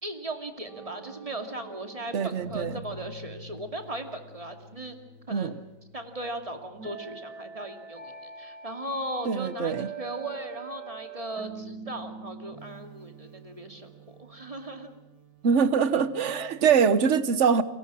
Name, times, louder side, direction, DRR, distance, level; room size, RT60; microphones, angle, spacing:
voice 1, 0.0-4.9 5.3-5.6 5.9-14.9, right 1 dB, 20° right, 2.5 m, -37 dB
sound 1, 0.7-16.7, right 4 dB, 75° right, 3.1 m, -45 dB
voice 2, 2.1-2.7 5.3-5.5 9.2-9.9 15.4-17.6, right 6 dB, 45° right, 1.3 m, -23 dB
30.0 x 23.0 x 6.3 m
omnidirectional pair, 1.8 m